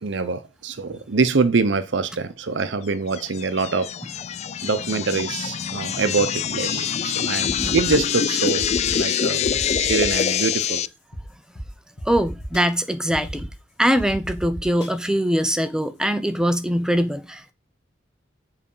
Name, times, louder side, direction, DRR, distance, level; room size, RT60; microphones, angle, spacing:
voice 1, 0.0-3.9 4.6-10.9, right 4 dB, 70° right, 0.7 m, -24 dB
sound 1, 3.1-10.9, left 8 dB, 35° left, 0.3 m, -25 dB
sound 2, 7.4-8.1 8.6-9.0 9.4-10.4 11.1-11.2 11.5-11.6 12.0-12.6 13.1-13.5 14.0-14.9, equal, 65° left, 2.6 m, -33 dB
voice 2, 12.1-13.5 13.8-17.5, equal, 5° right, 0.7 m, -22 dB
7.6 x 4.9 x 5.5 m
head